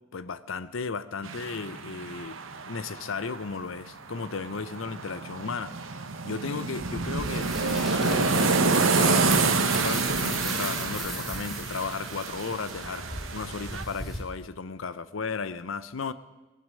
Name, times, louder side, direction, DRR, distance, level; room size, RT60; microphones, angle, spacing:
voice 1, 0.1-2.4 2.7-5.9 6.2-13.1 13.3-16.1, left 4 dB, 70° left, 14 dB, 0.7 m, -35 dB
sound 1, 1.2-3.8 4.1-13.8, right 4 dB, 75° right, 1.1 m, -28 dB
sound 2, 6.8-14.2, right 1 dB, ahead, 2.9 m, -37 dB
19.5 x 9.4 x 7.6 m, 1.1 s
head